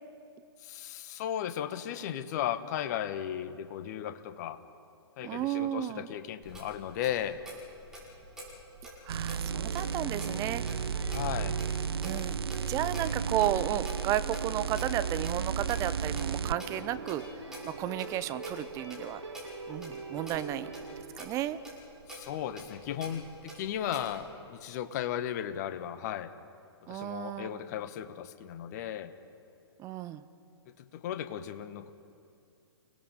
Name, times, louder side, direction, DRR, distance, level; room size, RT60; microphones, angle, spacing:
voice 1, 0.6-4.6 5.2-7.4 11.1-11.6 22.1-26.3 26.8-29.1 30.7-31.9, left 10 dB, 40° left, 11 dB, 1.3 m, -36 dB
voice 2, 5.2-6.1 9.0-10.6 12.0-12.4 12.7-19.2 19.7-20.7 21.2-21.6 26.9-27.6 29.8-30.2, right 12 dB, 20° right, 13 dB, 0.7 m, -33 dB
Clock, 6.4-24.2, equal, 5° right, 6.6 m, -47 dB
sound 1, 9.1-16.6 20.3-20.4, right 8 dB, 65° right, 0.6 m, -34 dB
sound 2, 9.5-21.0, right 3 dB, 85° right, 2.3 m, -41 dB
30.0 x 18.5 x 5.3 m, 2.5 s
figure-of-eight pair, 120°, 14 cm